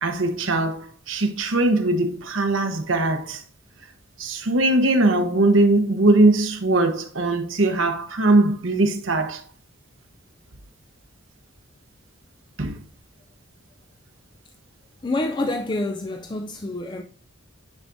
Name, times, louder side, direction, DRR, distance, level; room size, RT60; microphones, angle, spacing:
voice 1, 0.0-3.4 4.2-9.4 12.6-12.8, right 2 dB, 75° right, 1.1 m, -20 dB
voice 2, 15.0-17.0, left 2 dB, 25° left, 0.4 m, -27 dB
9.6 x 4.8 x 2.7 m
head